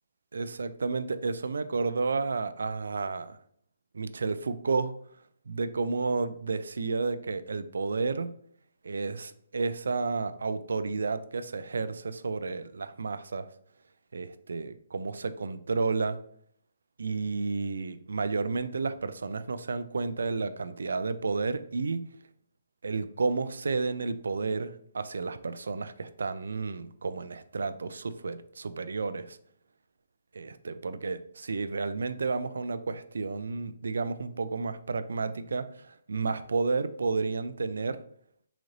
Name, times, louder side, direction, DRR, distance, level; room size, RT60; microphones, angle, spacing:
voice 1, 0.3-3.4 3.9-4.9 5.5-8.3 8.8-13.5 14.1-16.2 17.0-22.1 22.8-29.4 30.3-38.0, right 4 dB, 90° right, 12 dB, 0.3 m, -31 dB
4.0 x 3.1 x 2.5 m, 0.65 s
hypercardioid pair, 180°, 0 cm